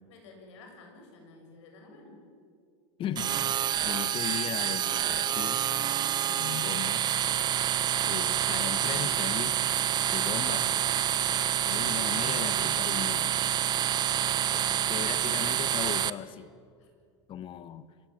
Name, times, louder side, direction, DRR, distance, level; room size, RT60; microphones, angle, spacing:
voice 1, 0.1-2.2 14.2-14.5 16.7-16.9, left 3 dB, 75° left, 2 dB, 7.3 m, -52 dB
voice 2, 3.0-3.3 3.8-5.6 6.3-7.1 8.0-9.5 10.1-10.8 11.6-13.4 14.5-16.5 17.3-17.9, left 10 dB, 35° left, 14 dB, 1.1 m, -37 dB
sound 1, 3.1-16.1, right 10 dB, 25° right, 0.7 m, -27 dB
26.0 x 15.5 x 9.1 m, 2.2 s
supercardioid pair, 130°, 15 cm